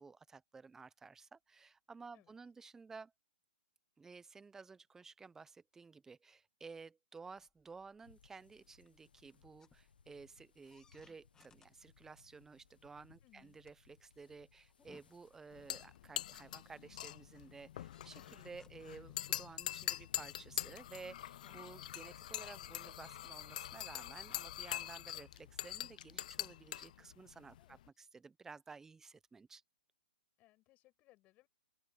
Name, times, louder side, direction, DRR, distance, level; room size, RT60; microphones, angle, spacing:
voice 1, 0.0-3.1 4.0-29.6, right 4 dB, 10° right, 1.0 m, -54 dB
sound 1, 7.3-23.0, left 6 dB, 10° left, 1.9 m, -71 dB
sound 2, 8.0-27.7, left 6 dB, 80° left, 1.3 m, -70 dB
voice 2, 13.2-13.6 27.5-27.8 30.4-31.5, left 18 dB, 30° left, 7.7 m, -68 dB
sound 3, 15.5-27.9, left 12 dB, 55° left, 0.6 m, -44 dB
hypercardioid pair, 130°, 5 cm